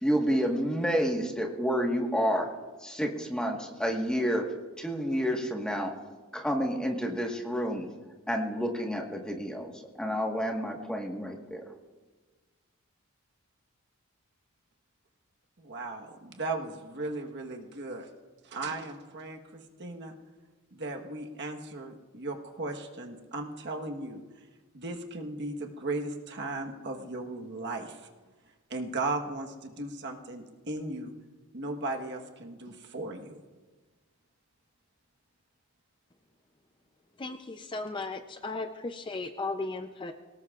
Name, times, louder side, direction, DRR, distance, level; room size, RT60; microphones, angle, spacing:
voice 1, 0.0-2.5 2.8-4.5 4.8-5.9 6.3-7.9 8.3-11.6, equal, 5° left, 1 dB, 1.4 m, -29 dB
voice 2, 15.6-18.1 18.4-20.1 20.7-24.2 24.7-28.0 28.7-31.1 31.5-33.4, right 2 dB, 50° right, 3 dB, 1.3 m, -36 dB
voice 3, 37.2-40.1, left 3 dB, 20° left, 7 dB, 0.5 m, -36 dB
22.5 x 18.5 x 2.4 m, 1.3 s
head